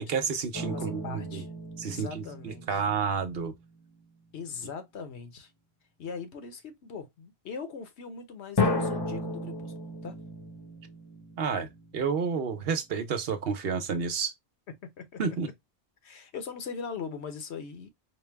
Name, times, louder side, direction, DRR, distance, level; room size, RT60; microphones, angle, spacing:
voice 1, 0.0-1.4 1.8-3.5 11.4-14.3 15.2-15.5, right 6 dB, 65° right, 0.9 m, -30 dB
sound 1, 0.5-3.7 8.6-12.2, left 2 dB, 25° left, 0.7 m, -34 dB
voice 2, 0.7-1.5 1.8-2.8 4.3-5.5 6.0-9.7 10.0-10.2 14.8-15.2 16.0-17.9, left 5 dB, 75° left, 1.1 m, -40 dB
4.4 x 2.1 x 3.3 m
omnidirectional pair, 1.1 m